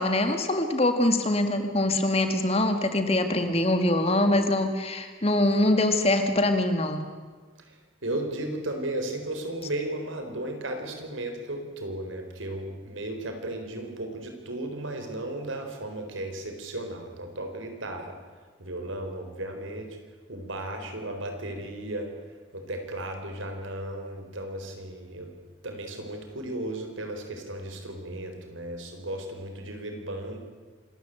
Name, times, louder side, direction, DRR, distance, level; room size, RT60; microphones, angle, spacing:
voice 1, 0.0-7.0, left 1 dB, 30° left, 7 dB, 1.9 m, -24 dB
voice 2, 7.6-18.2 18.6-20.0 20.3-22.1 22.5-25.3 25.6-30.4, right 1 dB, 80° right, 5 dB, 4.1 m, -35 dB
26.0 x 13.5 x 9.1 m, 1.4 s
head